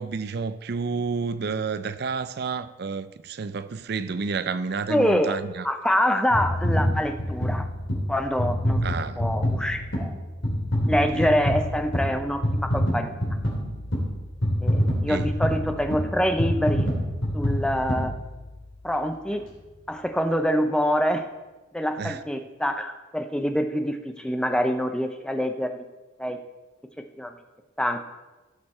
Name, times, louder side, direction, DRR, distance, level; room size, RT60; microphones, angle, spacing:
voice 1, 0.0-5.7 8.8-9.2 11.1-11.3 15.1-15.3 22.0-22.2, right 5 dB, 50° right, 0.4 m, -30 dB
voice 2, 4.9-5.4 5.6-7.7 8.1-8.8 9.2-10.2 10.9-13.1 14.6-16.9 17.3-18.1 18.8-19.4 19.9-21.3 21.7-25.8 26.2-26.4 27.2-27.3 27.8-28.0, equal, 5° left, 0.5 m, -25 dB
sound 1, 6.3-18.7 19.3-19.4, equal, 65° left, 3.0 m, -26 dB
15.5 x 6.7 x 4.3 m
head